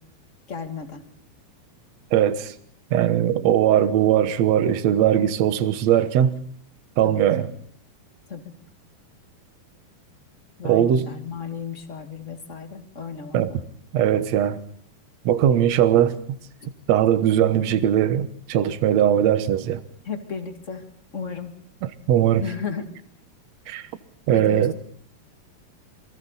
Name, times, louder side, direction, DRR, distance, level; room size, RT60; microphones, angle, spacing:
voice 1, 0.5-1.0 7.0-7.5 8.3-8.4 10.6-13.6 20.0-20.8 21.1-21.5 22.4-22.9 24.3-24.7, left 6 dB, 25° left, 1.7 m, -34 dB
voice 2, 2.1-2.5 2.9-6.3 7.0-7.5 10.6-11.1 13.3-13.5 13.9-14.6 15.2-16.2 16.9-19.8 21.8-22.4 23.7-23.8 24.3-24.7, right 10 dB, 65° right, 1.7 m, -20 dB
27.5 x 24.0 x 4.1 m
omnidirectional pair, 4.7 m